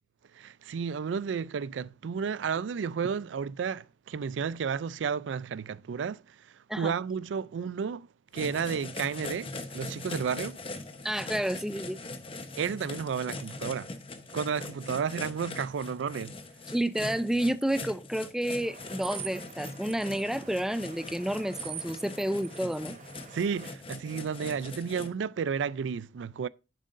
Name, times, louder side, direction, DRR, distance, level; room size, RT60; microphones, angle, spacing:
voice 1, 0.3-6.4 6.8-8.1 8.3-10.6 12.6-13.9 14.3-16.3 23.3-26.5, right 6 dB, 90° right, 0.4 m, -32 dB
sound 1, 8.3-25.1, left 3 dB, 30° left, 1.0 m, -41 dB
voice 2, 11.0-12.0 16.7-22.9, right 1 dB, 5° right, 0.4 m, -30 dB
sound 2, 18.6-23.7, right 8 dB, 45° right, 0.8 m, -45 dB
10.5 x 7.5 x 2.6 m
head